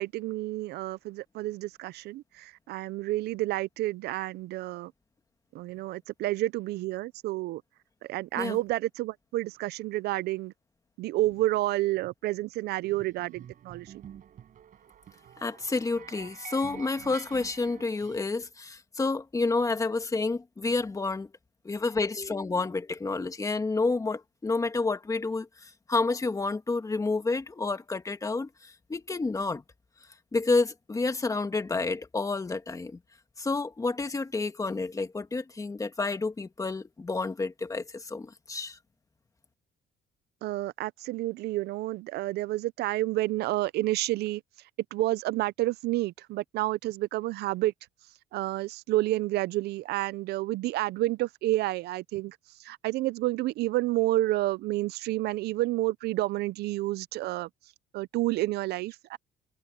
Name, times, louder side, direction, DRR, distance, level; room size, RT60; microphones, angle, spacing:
voice 1, 0.0-4.9 5.5-7.6 8.0-10.5 11.0-13.9 40.4-44.4 44.9-47.7 48.3-57.5 57.9-59.2, right 17 dB, 75° right, 0.5 m, -30 dB
sound 1, 12.8-18.3, right 9 dB, 55° right, 6.5 m, -48 dB
voice 2, 15.4-21.3 21.7-29.6 30.3-33.0 33.4-38.8, left 3 dB, 20° left, 1.8 m, -29 dB
cardioid pair, 110°, 17 cm